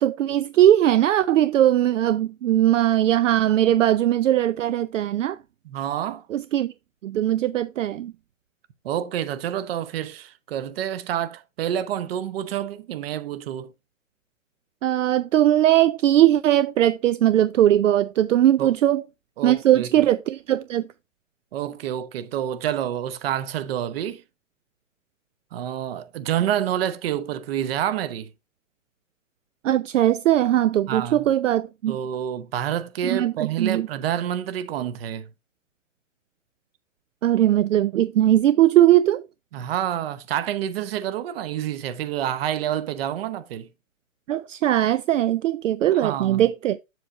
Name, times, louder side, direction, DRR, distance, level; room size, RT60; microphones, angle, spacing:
voice 1, 0.0-5.4 6.3-6.7 7.0-8.1 14.8-19.0 19.4-20.9 29.6-32.0 33.0-33.3 33.6-33.9 37.2-39.2 44.3-46.8, right 12 dB, 65° right, 0.6 m, -20 dB
voice 2, 5.6-6.3 8.8-13.7 18.6-18.7 19.4-19.9 21.5-24.2 25.5-28.3 30.9-31.3 31.9-35.3 39.5-43.7 45.9-46.4, right 10 dB, 45° right, 0.9 m, -28 dB
7.4 x 7.3 x 2.7 m
hypercardioid pair, 140°, 40 cm